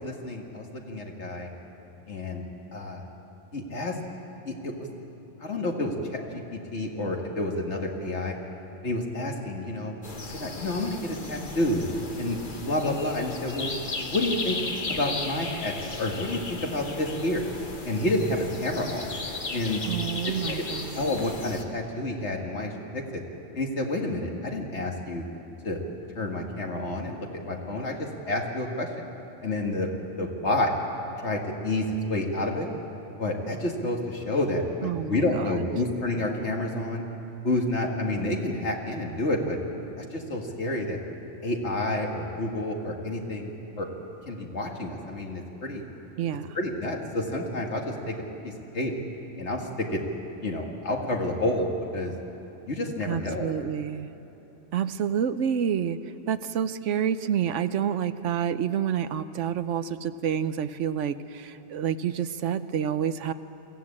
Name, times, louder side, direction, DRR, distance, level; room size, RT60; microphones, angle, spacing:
voice 1, 0.0-1.5 2.1-2.4 2.7-3.0 3.5-4.0 4.5-4.9 5.4-6.2 6.5-8.4 8.8-9.9 10.2-11.8 12.2-12.4 12.7-13.7 14.0-14.6 14.9-17.4 17.8-19.1 19.5-19.9 20.5-20.6 20.9-23.2 23.6-25.2 25.6-25.8 26.2-28.9 29.4-29.9 30.2-30.7 31.2-32.7 33.2-37.0 37.4-39.6 40.0-41.0 41.4-43.5 43.8-43.9 44.3-45.8 46.5-48.2 48.4-48.9 49.4-50.0 50.4-52.1 52.7-53.5, left 1 dB, 65° left, 1 dB, 2.3 m, -29 dB
sound 1, 10.0-21.6, left 3 dB, 45° left, 1.4 m, -36 dB
voice 2, 19.9-21.1 34.8-35.5 46.2-46.6 53.0-54.1 54.7-56.0 56.3-63.3, right 8 dB, 80° right, 12 dB, 1.0 m, -28 dB
22.5 x 15.5 x 8.7 m, 2.9 s
omnidirectional pair, 1.3 m